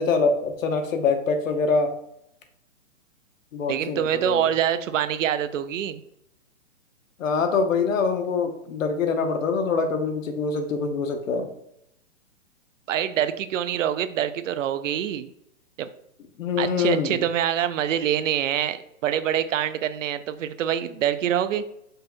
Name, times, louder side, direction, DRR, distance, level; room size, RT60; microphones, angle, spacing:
voice 1, 0.0-1.9 3.5-4.5 7.2-11.5 16.4-17.2, left 4 dB, 75° left, 6 dB, 0.9 m, -24 dB
voice 2, 3.7-6.0 12.9-15.3 15.8-15.9 16.6-21.6, right 10 dB, 70° right, 12 dB, 0.5 m, -25 dB
5.4 x 2.2 x 3.8 m, 0.77 s
hypercardioid pair, 160°, 39 cm